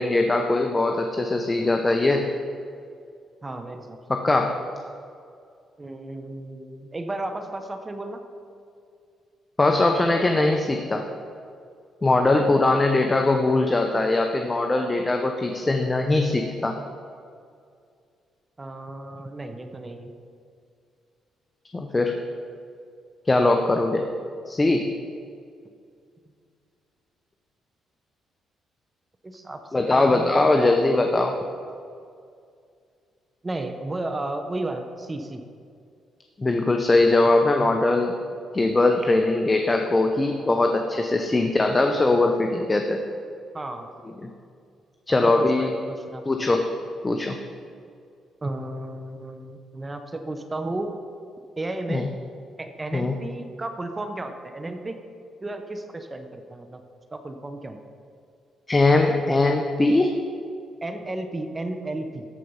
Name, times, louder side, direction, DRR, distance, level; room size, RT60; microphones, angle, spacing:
voice 1, 0.0-2.3 4.1-4.5 9.6-11.1 12.0-16.8 21.7-22.2 23.3-24.0 24.5-24.9 29.7-31.4 36.4-38.1 38.5-43.0 44.2-44.3 45.1-45.7 46.3-46.7 47.0-47.4 51.9-52.1 52.9-53.2 58.7-60.2, left 2 dB, 20° left, 4 dB, 0.7 m, -21 dB
voice 2, 3.4-4.0 5.8-8.2 12.3-12.8 18.6-20.1 29.2-30.5 33.4-35.4 43.5-43.9 45.1-46.2 48.4-50.9 51.6-52.1 52.6-55.0 55.4-56.8 57.1-57.8 60.8-62.3, right 2 dB, 20° right, 7 dB, 0.8 m, -33 dB
13.5 x 4.6 x 5.5 m, 2.3 s
cardioid pair, 90°, 0 cm